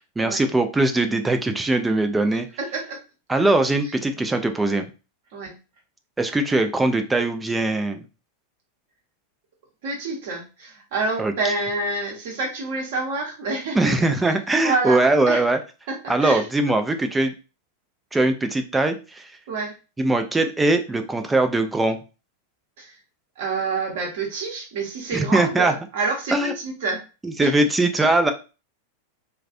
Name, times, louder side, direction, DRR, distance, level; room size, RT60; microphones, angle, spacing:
voice 1, 0.2-2.5 3.3-4.9 6.2-8.0 11.2-11.3 13.7-15.6 16.1-17.3 18.1-19.3 20.0-22.0 25.1-25.7 26.3-26.5 27.2-28.3, right 2 dB, 10° right, 6 dB, 0.3 m, -21 dB
voice 2, 2.6-3.0 3.8-3.9 5.3-5.6 9.8-13.9 14.2-14.3 14.6-15.4 15.9-16.5 19.5-19.7 22.8-23.0 23.4-27.0 27.4-27.5, right 3 dB, 50° right, 0 dB, 0.8 m, -28 dB
2.4 x 2.2 x 2.4 m, 0.32 s
figure-of-eight pair, 90°, 0 cm